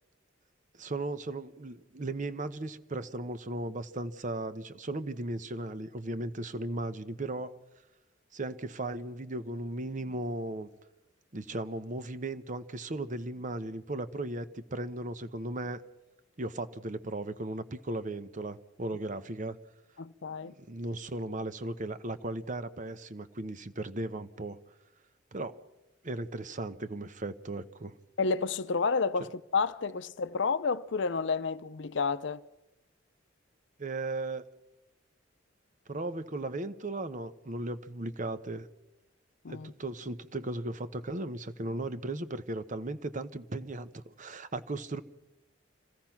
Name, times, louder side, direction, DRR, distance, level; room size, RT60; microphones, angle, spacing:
voice 1, 0.7-7.5 8.3-10.7 11.3-15.8 16.4-19.6 20.5-24.6 25.3-25.6 26.0-28.0 33.8-34.4 35.9-38.7 39.5-45.0, right 2 dB, 40° right, 0.9 m, -36 dB
voice 2, 20.0-20.5 28.2-32.4 39.4-39.7, left 4 dB, 65° left, 0.6 m, -30 dB
26.5 x 16.5 x 5.9 m
head